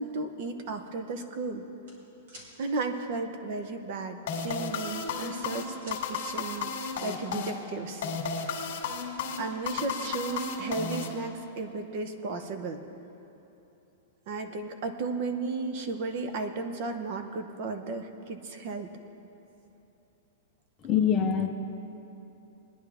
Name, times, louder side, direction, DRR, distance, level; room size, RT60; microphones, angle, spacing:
voice 1, 0.0-1.6 2.6-8.1 8.4-8.6 9.4-12.8 14.3-18.9, right 3 dB, 40° right, 7 dB, 0.8 m, -34 dB
sound 1, 1.8-2.5 4.1-4.4 4.8-6.0, equal, 60° right, 3.2 m, -49 dB
sound 2, 4.3-11.6, left 5 dB, 50° left, 1.9 m, -34 dB
voice 2, 20.8-21.5, left 8 dB, 20° left, 4 dB, 0.6 m, -24 dB
21.0 x 10.0 x 3.5 m, 3.0 s
supercardioid pair, 170°, 0 cm